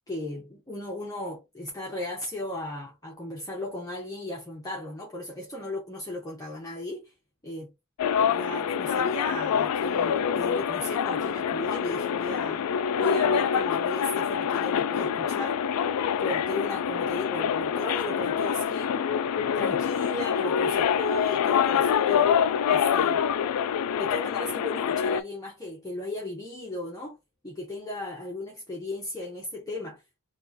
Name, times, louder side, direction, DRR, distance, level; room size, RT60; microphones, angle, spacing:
voice 1, 0.1-7.1 7.4-7.7 8.3-15.6 16.2-19.2 19.5-22.3 22.7-23.2 24.0-27.2 27.4-30.0, left 2 dB, 15° left, 0.8 m, -36 dB
sound 1, 8.0-25.2, left 8 dB, 80° left, 0.3 m, -26 dB
3.0 x 2.4 x 3.8 m
head